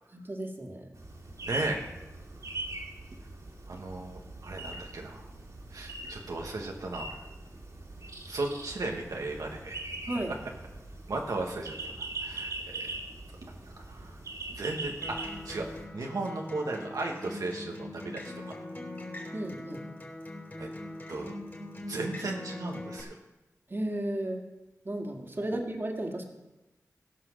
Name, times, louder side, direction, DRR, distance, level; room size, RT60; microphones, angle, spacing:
voice 1, 0.1-0.9 10.1-10.4 19.3-19.8 23.7-24.4 24.8-26.2, right 1 dB, 40° right, 2 dB, 2.0 m, -34 dB
sound 1, 0.9-15.9, right 2 dB, 65° right, 2.4 m, -41 dB
voice 2, 1.4-1.8 3.7-5.3 5.7-7.1 8.3-9.7 11.1-12.9 13.6-14.2 14.5-15.7 15.9-18.4 20.6-20.7 21.1-21.3 21.9-23.1, right 2 dB, 85° right, 0 dB, 1.3 m, -36 dB
Acoustic guitar, 15.0-23.0, left 1 dB, 35° left, 3.3 m, -42 dB
16.5 x 5.9 x 6.3 m, 1.0 s
wide cardioid pair, 60°, 6 cm